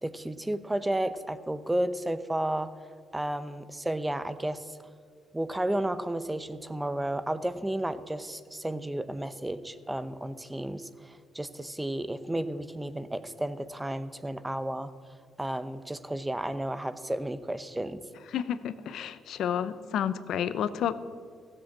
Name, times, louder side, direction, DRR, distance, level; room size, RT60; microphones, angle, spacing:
voice 1, 0.0-2.7 3.1-4.8 5.3-14.9 15.4-18.0, right 1 dB, 10° right, 13 dB, 0.7 m, -32 dB
voice 2, 18.3-20.9, left 9 dB, 75° left, 14 dB, 0.6 m, -30 dB
15.0 x 7.7 x 7.3 m, 2.1 s
cardioid pair, 90°, 0 cm